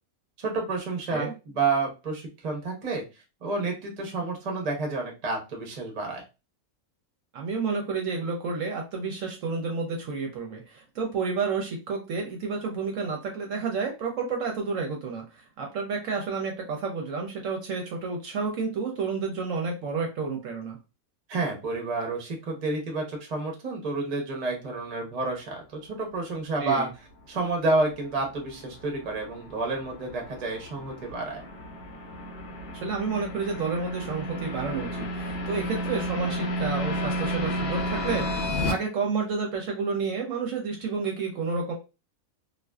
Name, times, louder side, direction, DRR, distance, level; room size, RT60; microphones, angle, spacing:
voice 1, 0.4-3.0 3.4-6.2 21.3-26.9 27.3-31.4, right 3 dB, 40° right, 2 dB, 0.6 m, -29 dB
voice 2, 7.3-20.8 26.6-26.9 32.7-41.7, right 4 dB, 70° right, 2 dB, 0.9 m, -30 dB
sound 1, 27.2-38.7, equal, 60° left, 0.7 m, -32 dB
2.5 x 2.3 x 2.2 m, 0.28 s
omnidirectional pair, 1.6 m